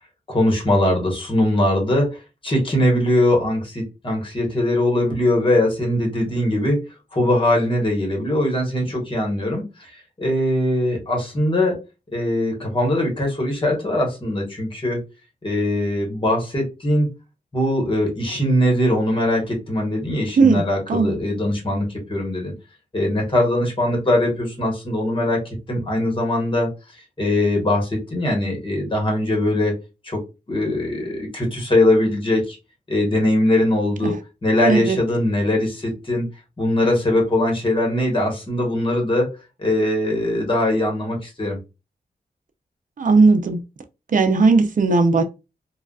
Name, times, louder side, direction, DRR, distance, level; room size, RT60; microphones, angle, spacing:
voice 1, 0.3-6.8 7.1-11.8 12.1-15.0 15.4-17.1 17.5-22.5 22.9-25.4 25.7-26.7 27.2-29.7 30.0-30.2 30.5-32.6 32.9-34.1 34.4-36.3 36.6-39.3 39.6-41.6, left 1 dB, 30° left, 1.2 m, -21 dB
voice 2, 34.7-35.0 43.0-43.6 44.1-45.2, right 4 dB, 55° right, 0.5 m, -16 dB
3.8 x 2.3 x 2.3 m
wide cardioid pair, 115°, 16 cm